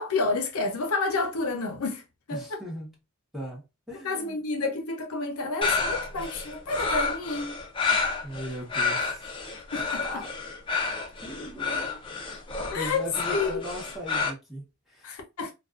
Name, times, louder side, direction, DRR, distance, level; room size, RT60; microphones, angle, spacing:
voice 1, 0.0-2.0 2.3-2.6 4.0-7.6 9.7-10.2 12.7-13.6 15.0-15.5, left 3 dB, 80° left, 0.6 m, -30 dB
voice 2, 2.3-2.9 3.3-4.4 8.2-9.2 10.0-10.3 11.2-12.0 12.3-12.4 12.7-15.1, equal, ahead, 0.8 m, -38 dB
sound 1, 5.6-14.3, left 4 dB, 20° left, 0.4 m, -30 dB
2.4 x 2.3 x 2.3 m
head